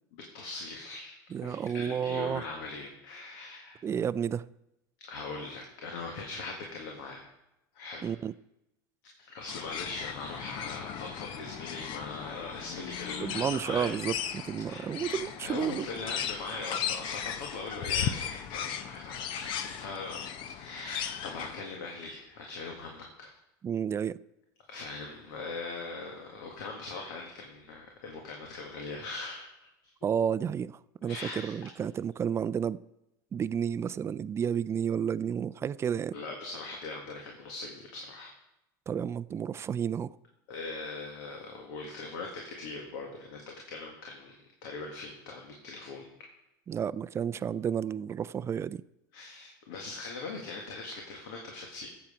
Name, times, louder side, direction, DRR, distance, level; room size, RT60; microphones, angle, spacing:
voice 1, 0.1-1.2 1.4-3.8 5.0-7.3 7.7-8.1 9.2-14.2 14.7-14.9 15.4-23.3 24.7-29.5 31.1-31.7 36.1-38.3 40.5-46.1 49.1-51.9, left 3 dB, 75° left, 1.8 m, -41 dB
voice 2, 1.3-2.4 3.8-4.5 8.0-8.3 13.2-15.9 23.6-24.2 30.0-32.8 33.3-36.2 38.9-40.1 46.7-48.8, right 8 dB, 25° right, 0.3 m, -31 dB
sound 1, 9.5-21.6, left 9 dB, 55° left, 0.8 m, -37 dB
13.5 x 7.9 x 5.0 m
supercardioid pair, 100°, 10 cm